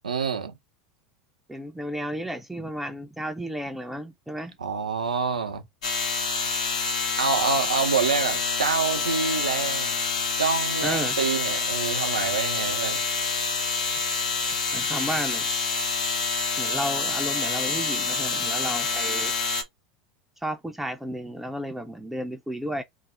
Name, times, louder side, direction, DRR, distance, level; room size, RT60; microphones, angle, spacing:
voice 1, 0.0-0.6 4.6-5.6 7.2-10.0 10.4-13.0 14.4-14.6, right 5 dB, 90° right, 0.5 m, -27 dB
voice 2, 1.5-4.6 10.8-11.2 14.7-15.5 16.6-19.3 20.4-22.8, equal, 5° right, 0.4 m, -32 dB
sound 1, 5.8-19.6, left 4 dB, 80° left, 0.7 m, -27 dB
2.5 x 2.0 x 3.7 m
hypercardioid pair, 85°, 4 cm